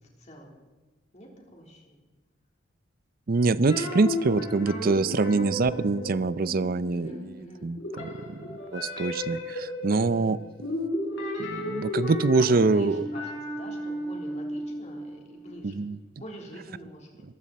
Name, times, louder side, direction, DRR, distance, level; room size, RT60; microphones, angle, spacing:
voice 1, 0.2-0.6 1.1-2.0 6.9-7.7 10.0-10.4 12.4-15.8 16.2-17.2, equal, 35° left, 0 dB, 3.6 m, -45 dB
voice 2, 3.3-7.2 7.6-10.4 11.5-13.0 15.6-16.0, right 3 dB, 50° right, 17 dB, 0.5 m, -25 dB
sound 1, 3.7-7.4 7.7-15.5, left 1 dB, 80° left, 5.2 m, -34 dB
21.0 x 15.0 x 4.2 m, 1.2 s
head